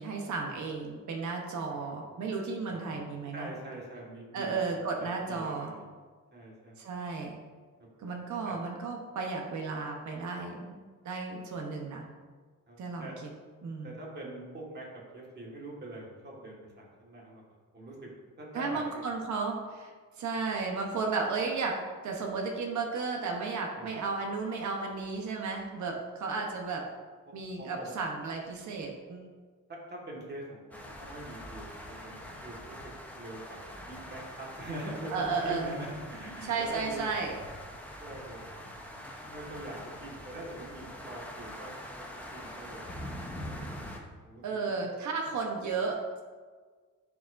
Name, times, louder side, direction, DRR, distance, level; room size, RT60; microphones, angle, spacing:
voice 1, 0.0-3.5 4.3-5.7 6.8-7.4 8.0-10.8 11.0-12.0 12.8-13.3 13.6-14.0 18.5-19.9 20.2-21.8 22.0-26.9 27.3-29.3 35.1-35.6 36.4-37.3 44.4-46.2, right 4 dB, 65° right, 1 dB, 0.9 m, -34 dB
voice 2, 2.7-3.0 3.3-5.8 6.3-6.7 7.8-7.9 8.4-8.5 12.7-13.2 13.8-14.8 15.1-17.4 17.7-19.0 23.7-24.0 27.6-27.9 29.7-32.8 33.1-37.0 38.0-38.5 38.9-42.0 42.3-43.0 43.7-43.8 44.2-44.8, right 1 dB, 35° right, -3 dB, 1.6 m, -43 dB
sound 1, 30.7-44.0, left 1 dB, 5° left, 0.7 m, -44 dB
10.5 x 4.8 x 2.5 m, 1.5 s
wide cardioid pair, 150°, 31 cm